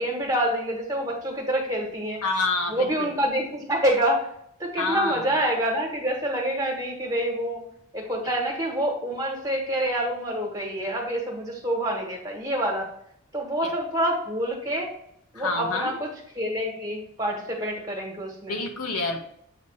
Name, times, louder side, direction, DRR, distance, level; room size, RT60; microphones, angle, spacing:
voice 1, 0.0-2.2 2.7-4.3 4.6-7.6 7.9-12.9 13.3-14.9 15.3-16.1 16.3-18.6, right 1 dB, 15° right, -2 dB, 1.6 m, -27 dB
voice 2, 2.2-2.9 4.8-5.3 13.6-13.7 15.3-15.9 18.5-19.2, left 3 dB, 90° left, 3 dB, 1.1 m, -27 dB
8.1 x 2.9 x 4.8 m, 0.69 s
head